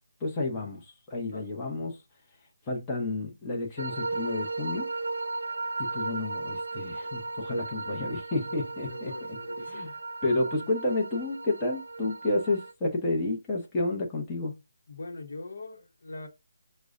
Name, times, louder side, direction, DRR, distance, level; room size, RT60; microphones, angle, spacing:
voice 1, 0.2-2.0 2.7-4.9 5.8-9.4 9.7-9.9 10.2-14.6, left 2 dB, 15° left, 0.7 m, -30 dB
sound 1, 3.8-12.7, right 3 dB, 75° right, 0.5 m, -36 dB
voice 2, 8.9-9.9 14.9-16.3, left 2 dB, 65° left, 0.9 m, -42 dB
6.0 x 2.1 x 2.4 m
hypercardioid pair, 165°, 0 cm